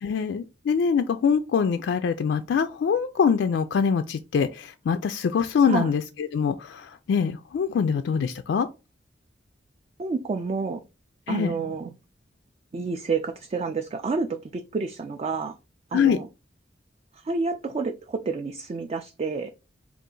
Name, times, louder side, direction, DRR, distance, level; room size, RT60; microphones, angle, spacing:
voice 1, 0.0-8.7 11.3-11.5 15.9-16.2, left 6 dB, 70° left, 0.3 m, -24 dB
voice 2, 10.0-10.8 11.3-11.9 12.7-14.3 14.5-15.6 15.9-16.3 17.2-19.5, right 4 dB, 35° right, 0.3 m, -29 dB
3.8 x 2.4 x 3.7 m
head